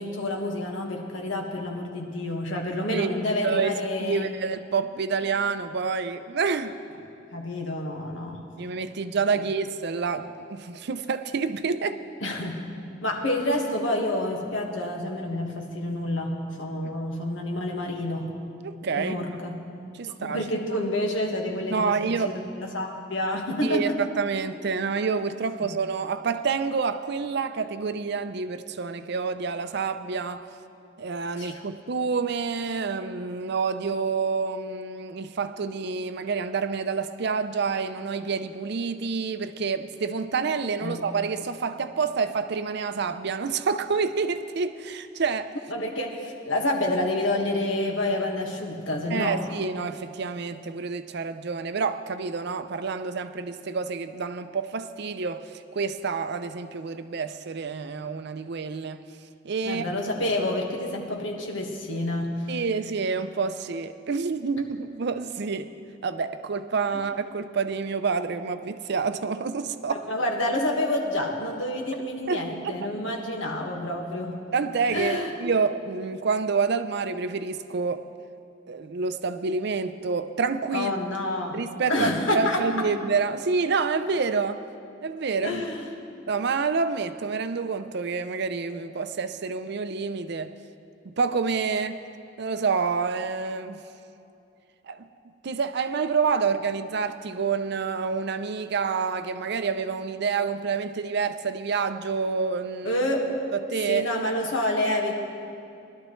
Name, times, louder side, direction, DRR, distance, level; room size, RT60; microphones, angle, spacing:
voice 1, 0.0-4.3 7.3-8.4 9.3-9.4 12.2-12.6 13.0-18.3 18.9-19.6 20.1-24.0 25.6-25.8 31.4-31.6 40.8-41.0 45.7-49.4 59.6-62.4 70.1-74.4 74.9-75.3 80.7-82.6 85.4-85.9 102.8-103.4 103.9-105.2, left 1 dB, 85° left, 1 dB, 1.6 m, -28 dB
voice 2, 4.0-6.7 8.6-12.0 16.8-16.9 18.6-19.1 19.9-20.4 21.7-22.3 23.6-23.9 24.2-30.4 31.0-45.5 49.1-55.4 55.7-59.0 59.4-59.8 62.5-65.7 66.0-70.0 72.3-72.8 74.5-78.0 78.7-80.9 81.5-82.1 82.3-84.6 85.0-85.6 86.3-90.5 91.0-92.0 92.4-93.8 94.9-95.1 95.4-103.0 103.7-104.1, right 5 dB, 60° right, 10 dB, 0.5 m, -28 dB
20.0 x 12.0 x 3.2 m, 2.6 s
head